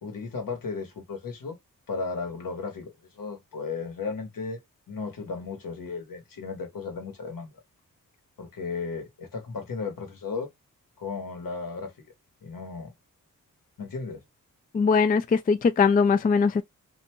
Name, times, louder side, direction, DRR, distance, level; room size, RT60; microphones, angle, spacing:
voice 1, 0.0-1.6 1.9-4.6 4.9-7.5 8.4-10.5 11.0-12.1 12.4-12.9 13.8-14.2, left 4 dB, 75° left, 1.2 m, -35 dB
voice 2, 14.7-16.6, left 5 dB, 25° left, 0.4 m, -21 dB
2.6 x 2.2 x 2.9 m
cardioid pair, 55°, 34 cm